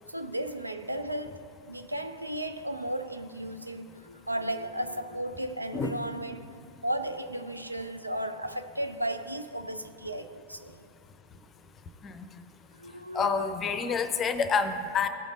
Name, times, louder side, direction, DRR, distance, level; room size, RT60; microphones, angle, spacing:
voice 1, 0.1-6.5 6.8-10.8 12.8-13.5 13.9-14.0, right 1 dB, 85° right, 0.4 m, -35 dB
voice 2, 13.1-15.1, left 5 dB, 25° left, 0.6 m, -28 dB
16.0 x 5.3 x 3.7 m
figure-of-eight pair, 90°, 0 cm